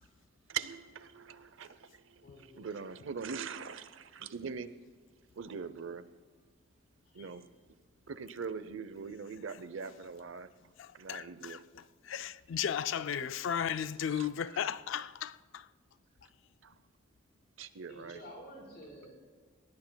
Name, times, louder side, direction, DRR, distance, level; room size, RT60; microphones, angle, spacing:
voice 1, 0.5-2.3 2.6-4.7 5.4-6.0 7.1-7.4 8.1-10.5 10.9-11.6 13.8-13.9 14.1-14.3 16.6-16.7 17.6-18.2, right 6 dB, 70° right, 0.7 m, -42 dB
voice 2, 2.2-2.8 7.0-7.4 12.9-13.1 16.0-16.4 17.9-19.1, equal, 50° left, 4.5 m, -52 dB
voice 3, 10.8-15.7, left 8 dB, 65° left, 0.4 m, -35 dB
20.0 x 18.5 x 2.3 m
head